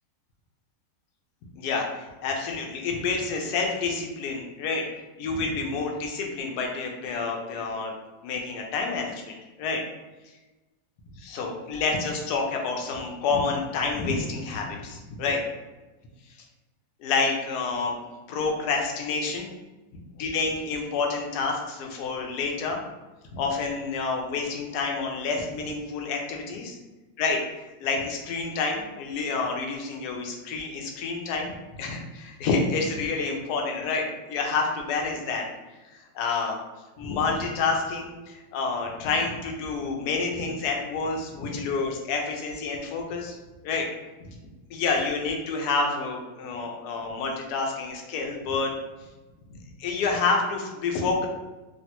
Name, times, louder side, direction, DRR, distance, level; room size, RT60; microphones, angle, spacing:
voice 1, 1.6-4.8 5.2-7.9 8.2-9.8 11.2-15.4 17.0-19.5 20.2-22.8 23.3-26.8 27.2-27.4 27.8-35.4 35.9-36.5 37.0-43.4 43.6-43.9 44.2-44.3 44.7-48.7 49.5-51.3, left 4 dB, 70° left, 1 dB, 1.0 m, -28 dB
3.2 x 2.5 x 2.8 m, 1.1 s
omnidirectional pair, 2.0 m